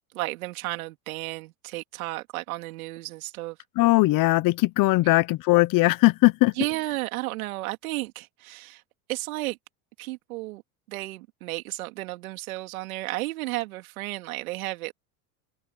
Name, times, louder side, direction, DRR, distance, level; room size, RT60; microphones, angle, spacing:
voice 1, 0.1-3.6 5.0-5.1 6.5-8.8 9.1-9.6 10.0-10.6 10.9-14.9, right 19 dB, 80° right, 3.3 m, -33 dB
voice 2, 3.8-6.5, left 21 dB, 50° left, 1.1 m, -20 dB
supercardioid pair, 100°, 42 cm